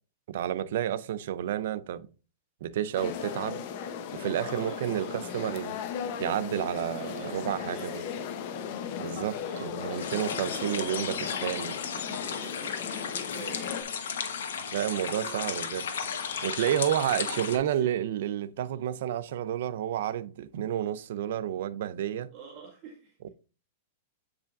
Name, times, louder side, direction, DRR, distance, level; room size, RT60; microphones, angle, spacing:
voice 1, 0.3-2.1 2.6-3.6 4.1-5.8 6.2-8.0 9.0-11.2 11.4-11.7 14.7-15.9 16.4-22.3, right 11 dB, 65° right, 0.5 m, -30 dB
sound 1, 2.9-13.8, left 8 dB, 50° left, 0.7 m, -37 dB
voice 2, 4.4-5.5 6.8-8.3 9.4-11.4 11.8-13.7 14.3-15.4 16.9-18.0 22.3-23.3, right 6 dB, 35° right, 2.0 m, -48 dB
sound 2, 10.0-17.6, left 7 dB, 90° left, 1.1 m, -34 dB
8.1 x 5.0 x 2.5 m
supercardioid pair, 155°, 0 cm